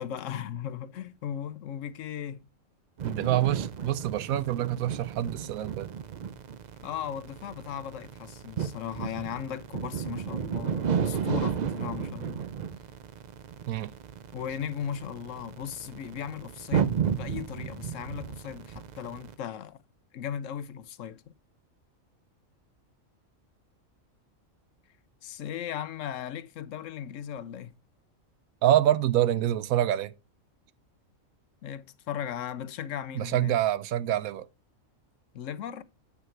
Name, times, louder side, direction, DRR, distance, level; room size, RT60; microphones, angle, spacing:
voice 1, 0.0-2.4 6.8-12.4 14.3-19.8 20.1-21.2 25.2-27.7 31.6-33.5 35.3-35.8, left 9 dB, 70° left, 1.0 m, -37 dB
sound 1, 3.0-19.3, right 7 dB, 55° right, 0.5 m, -33 dB
voice 2, 3.0-5.9 13.7-13.9 28.6-30.1 33.1-34.5, right 12 dB, 85° right, 1.1 m, -26 dB
9.1 x 5.8 x 4.5 m
omnidirectional pair, 1.4 m